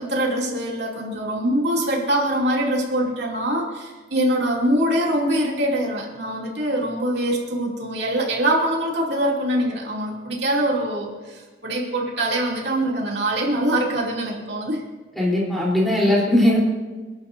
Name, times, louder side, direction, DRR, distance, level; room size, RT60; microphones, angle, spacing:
voice 1, 0.0-14.8, right 1 dB, 60° right, -3 dB, 2.8 m, -23 dB
voice 2, 15.2-16.6, left 1 dB, ahead, -6 dB, 3.7 m, -19 dB
28.5 x 11.0 x 2.7 m, 1.3 s
head